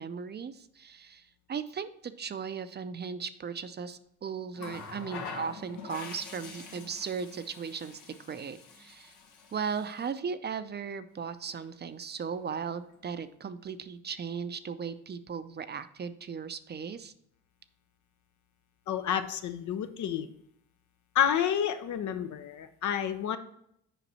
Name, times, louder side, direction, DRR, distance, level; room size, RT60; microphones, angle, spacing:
voice 1, 0.0-9.1 9.5-17.1, right 6 dB, 35° right, 12 dB, 0.5 m, -37 dB
Water tap faucet, 4.5-10.1 11.3-11.5, left 5 dB, 90° left, 1.4 m, -45 dB
voice 2, 18.9-20.3 21.1-23.4, left 9 dB, 70° left, 10 dB, 0.7 m, -29 dB
7.0 x 5.1 x 4.2 m, 0.73 s
cardioid pair, 90°, 30 cm